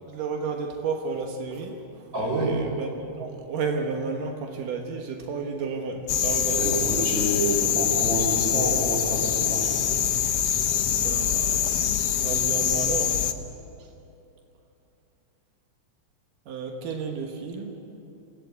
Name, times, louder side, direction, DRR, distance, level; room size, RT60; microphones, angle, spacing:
voice 1, 0.1-1.8 2.1-7.1 11.0-11.9 12.2-13.2 13.8-13.9 16.5-17.8, right 4 dB, 90° right, 2 dB, 3.0 m, -32 dB
voice 2, 2.1-2.6 6.6-10.0, right 1 dB, 35° right, -2 dB, 6.3 m, -28 dB
sound 1, 6.1-13.3, left 9 dB, 70° left, 1.4 m, -24 dB
28.0 x 17.0 x 8.3 m, 2.8 s
omnidirectional pair, 3.7 m